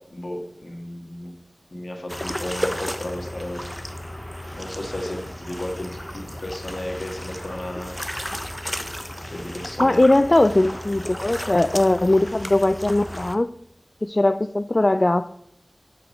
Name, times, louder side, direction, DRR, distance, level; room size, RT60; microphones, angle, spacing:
voice 1, 0.1-1.3 1.7-3.7 4.5-8.0 9.3-10.0, left 1 dB, 70° left, 2 dB, 1.9 m, -34 dB
sound 1, 2.1-13.4, equal, 10° left, 0.9 m, -33 dB
voice 2, 9.8-13.5 14.0-15.3, left 2 dB, 40° left, 12 dB, 0.3 m, -19 dB
8.4 x 5.8 x 6.5 m, 0.74 s
wide cardioid pair, 40°, 0 cm